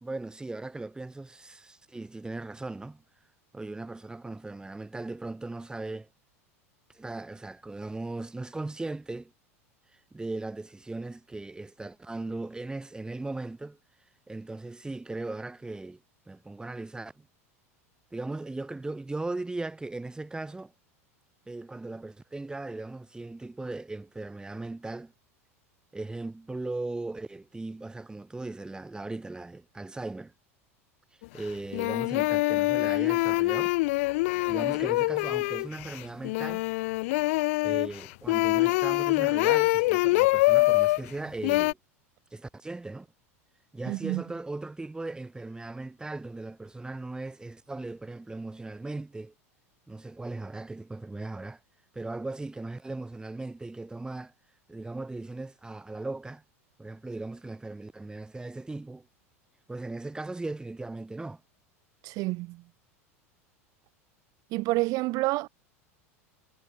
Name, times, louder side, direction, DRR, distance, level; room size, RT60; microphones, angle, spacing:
voice 1, 0.0-3.0 3.5-6.1 6.9-9.3 10.1-13.8 14.3-16.0 16.3-17.3 18.1-20.7 21.5-25.1 25.9-30.3 31.3-33.8 34.5-36.6 37.6-41.8 42.3-43.1 43.7-49.3 49.9-51.6 51.9-54.3 54.7-56.4 56.8-59.1 59.7-61.4, right 2 dB, 10° right, 3.0 m, -38 dB
sound 1, 31.2-31.3 31.7-41.0 41.4-41.7, left 22 dB, 60° left, 0.9 m, -25 dB
voice 2, 43.9-44.2 62.0-62.6 64.5-65.5, right 22 dB, 50° right, 1.5 m, -28 dB
hypercardioid pair, 85°, 8 cm